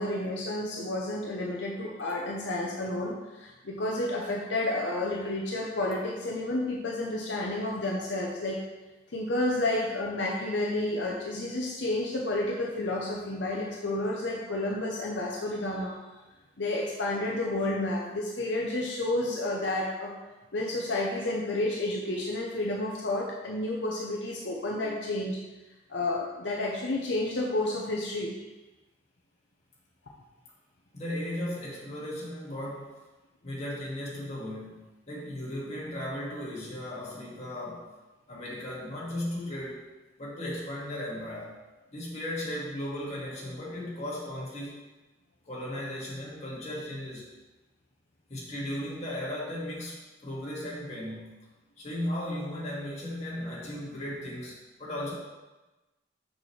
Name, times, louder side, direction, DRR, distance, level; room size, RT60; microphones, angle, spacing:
voice 1, 0.0-8.6 9.1-16.2 16.6-20.1 20.5-25.4 25.9-28.3, left 2 dB, 75° left, -2 dB, 0.8 m, -30 dB
voice 2, 30.9-32.9 33.4-37.9 38.3-39.9 40.2-41.6 41.9-44.8 45.4-47.3 48.3-51.3 51.8-55.1, left 1 dB, 40° left, -6 dB, 2.0 m, -36 dB
6.5 x 6.0 x 3.3 m, 1.1 s
head